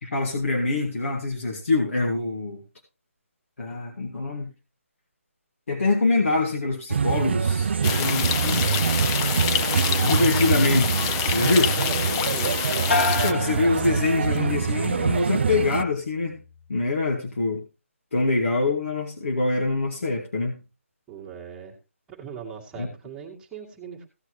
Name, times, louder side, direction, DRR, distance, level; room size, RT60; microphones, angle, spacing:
voice 1, 0.0-2.6 3.6-4.5 5.7-8.7 10.0-11.7 13.2-16.4 16.7-17.6 18.1-20.6 22.8-22.9, left 3 dB, 65° left, 2.4 m, -24 dB
sound 1, 6.9-15.8, right 6 dB, 50° right, 0.4 m, -25 dB
sound 2, 7.8-13.3, left 8 dB, 20° left, 0.6 m, -27 dB
voice 2, 11.6-12.5 21.1-21.8 22.1-24.1, right 7 dB, 10° right, 2.0 m, -39 dB
sound 3, 12.9-14.6 15.0-15.6, left 4 dB, 50° left, 1.4 m, -29 dB
16.5 x 8.1 x 3.2 m
figure-of-eight pair, 155°, 8 cm